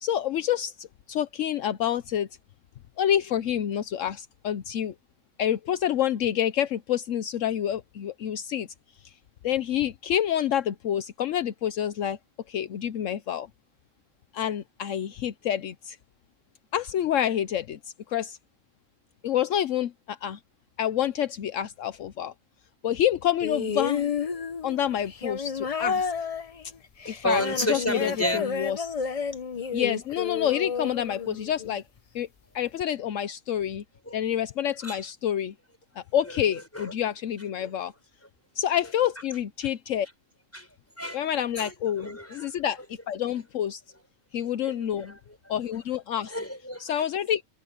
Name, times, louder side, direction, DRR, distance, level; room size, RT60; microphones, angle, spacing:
voice 1, 0.0-2.3 3.0-4.9 5.4-8.7 9.0-9.1 9.4-12.2 12.5-13.5 14.3-16.0 16.7-18.4 19.2-20.4 20.8-22.3 22.8-24.1 24.6-26.3 27.1-27.4 27.7-28.9 29.7-31.8 32.1-32.3 32.5-33.8 34.1-35.5 36.0-37.9 38.5-40.1 41.1-43.8 44.3-45.1 45.5-46.3 46.8-47.5, left 10 dB, 75° left, 1.1 m, -28 dB
sound 1, 23.4-31.8 32.8-32.9, left 6 dB, 40° left, 0.6 m, -31 dB
voice 2, 27.0-28.5 34.1-34.2 34.8-35.0 36.2-36.3 36.7-36.9 37.6-37.7 39.0-39.1 40.5-41.2 41.6-42.5 42.8-42.9 44.6-45.2 46.2-47.1, equal, 10° left, 6.0 m, -32 dB
omnidirectional pair, 1.4 m